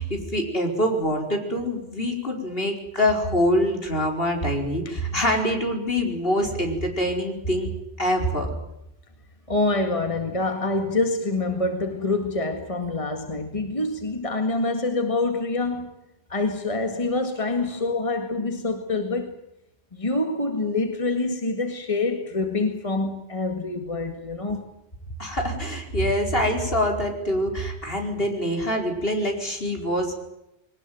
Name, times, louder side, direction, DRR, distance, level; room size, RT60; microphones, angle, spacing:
voice 1, 0.0-7.7 8.0-8.5 25.2-30.1, equal, 60° left, 5.0 m, -25 dB
voice 2, 9.5-15.9 16.3-19.3 19.9-24.7, left 2 dB, 30° left, 2.0 m, -26 dB
22.5 x 19.0 x 9.3 m
omnidirectional pair, 1.1 m